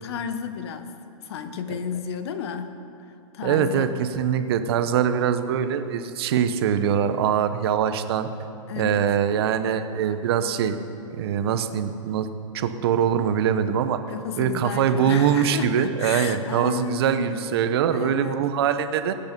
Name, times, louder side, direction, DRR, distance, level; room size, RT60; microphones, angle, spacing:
voice 1, 0.0-1.0 1.2-2.9 3.3-4.0 8.7-9.1 14.1-17.4 17.9-18.4, left 6 dB, 50° left, 9 dB, 1.1 m, -32 dB
voice 2, 3.4-8.3 8.8-10.8 11.1-12.3 12.5-14.0 14.4-19.1, right 8 dB, 50° right, 10 dB, 0.9 m, -23 dB
20.5 x 8.8 x 5.3 m, 2.7 s
hypercardioid pair, 155°, 17 cm